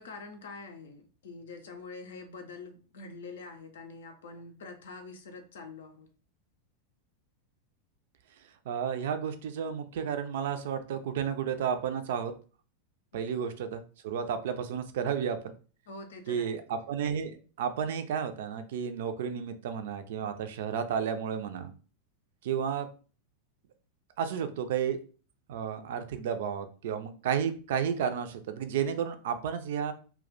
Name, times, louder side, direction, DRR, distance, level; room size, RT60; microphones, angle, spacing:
voice 1, 0.0-6.1 15.9-16.6, left 3 dB, 60° left, 0.5 m, -45 dB
voice 2, 8.7-12.3 13.1-15.5 16.3-21.7 22.4-22.9 24.2-25.0 25.5-29.9, right 7 dB, 55° right, 0.4 m, -32 dB
2.3 x 2.1 x 3.8 m
figure-of-eight pair, 90°, 0 cm